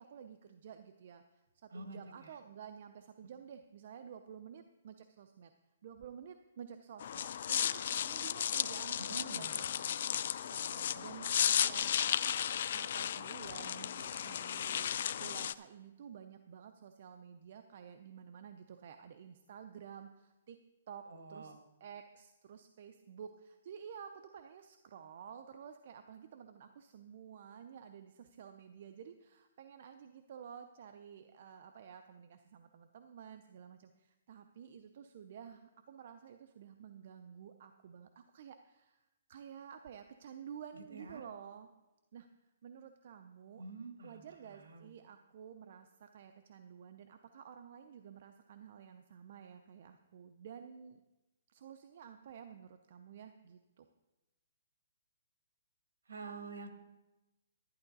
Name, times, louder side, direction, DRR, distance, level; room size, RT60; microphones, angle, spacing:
voice 1, 0.0-5.5 5.8-12.4 12.7-20.6 20.9-21.0 21.3-21.5 21.8-39.0 39.3-41.7 42.1-42.3 42.6-43.6 44.0-51.0 51.5-53.9, right 8 dB, 50° right, 7 dB, 0.5 m, -52 dB
voice 2, 1.7-2.3 9.1-9.6 21.1-21.6 40.9-41.2 43.6-44.9 56.1-56.7, right 3 dB, 85° right, 5 dB, 1.6 m, -47 dB
sound 1, 7.0-15.5, left 9 dB, 55° left, 0.3 m, -34 dB
11.5 x 10.5 x 4.0 m, 1.0 s
hypercardioid pair, 160°, 0 cm